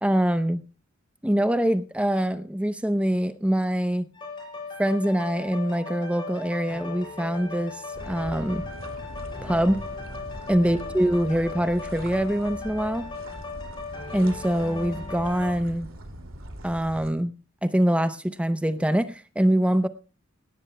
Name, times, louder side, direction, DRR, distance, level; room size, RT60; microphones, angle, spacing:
voice 1, 0.0-0.6 1.2-4.0 4.8-7.8 8.1-8.6 9.4-9.8 10.5-13.1 14.1-15.9 16.6-17.3 17.6-19.9, equal, 5° right, 11 dB, 0.7 m, -24 dB
sound 1, 4.1-15.5, left 4 dB, 25° left, 6.3 m, -37 dB
sound 2, 7.9-17.1, right 1 dB, 85° right, 2.5 m, -41 dB
18.0 x 17.0 x 2.2 m, 0.34 s
head